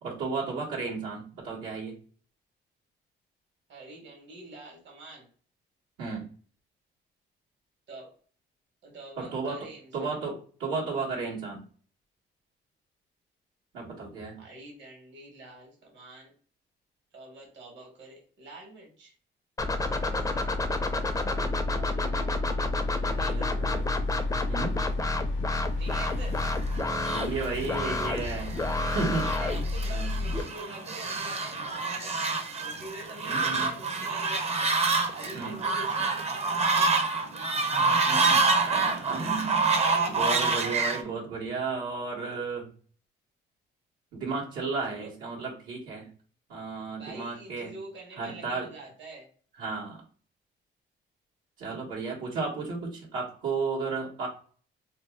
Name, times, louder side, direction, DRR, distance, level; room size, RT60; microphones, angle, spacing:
voice 1, 0.0-1.9 6.0-6.3 9.2-9.6 9.9-11.6 13.7-14.4 21.2-22.5 23.0-23.8 24.5-24.8 27.1-29.3 29.9-30.1 33.2-33.7 35.3-35.6 37.7-39.8 40.1-42.7 44.1-46.1 46.5-47.8 48.2-48.7 49.6-50.0 51.6-54.3, right 4 dB, 90° right, -7 dB, 1.3 m, -34 dB
voice 2, 3.7-5.3 7.9-8.1 8.8-10.1 14.4-16.3 17.1-19.1 19.8-20.4 23.2-23.5 25.8-26.4 29.2-32.3 32.6-34.8 35.1-36.9 39.6-40.2 41.0-41.2 44.9-45.1 46.9-49.3, right 2 dB, 65° right, -1 dB, 1.4 m, -45 dB
sound 1, 19.6-30.4, left 2 dB, 15° left, 0.4 m, -29 dB
sound 2, 22.8-29.5, left 4 dB, 70° left, 0.6 m, -44 dB
Fowl, 26.2-41.0, right 3 dB, 30° right, 0.6 m, -28 dB
2.6 x 2.2 x 3.3 m, 0.42 s
cardioid pair, 90°, 20 cm